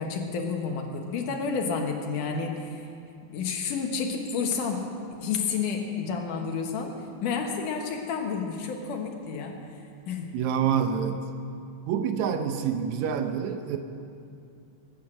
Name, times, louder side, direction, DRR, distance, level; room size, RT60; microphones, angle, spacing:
voice 1, 0.0-2.8 3.3-4.8 5.2-6.9 7.2-9.6 10.1-10.3, left 5 dB, 85° left, 2 dB, 3.0 m, -30 dB
voice 2, 10.3-11.2 11.9-13.8, right 8 dB, 75° right, 7 dB, 2.0 m, -27 dB
22.0 x 9.5 x 6.5 m, 2.5 s
omnidirectional pair, 3.6 m